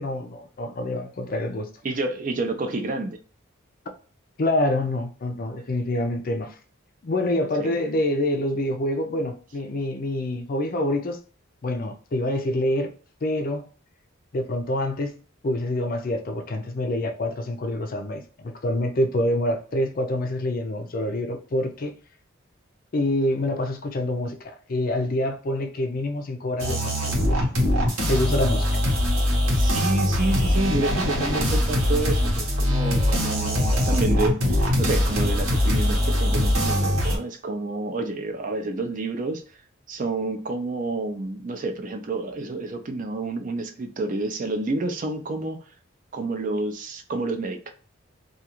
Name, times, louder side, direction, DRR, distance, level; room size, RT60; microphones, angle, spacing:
voice 1, 0.0-1.7 4.4-6.5 7.0-11.2 11.6-12.9 13.2-13.7 14.3-15.2 15.4-21.9 22.9-27.4 28.1-28.7, left 1 dB, 45° left, 0.4 m, -26 dB
voice 2, 1.8-3.2 7.6-7.7 29.5-39.4 39.9-45.6 46.1-47.7, right 2 dB, 40° right, 0.4 m, -29 dB
sound 1, 26.6-37.2, left 1 dB, 80° right, 1.0 m, -22 dB
2.4 x 2.3 x 2.9 m
head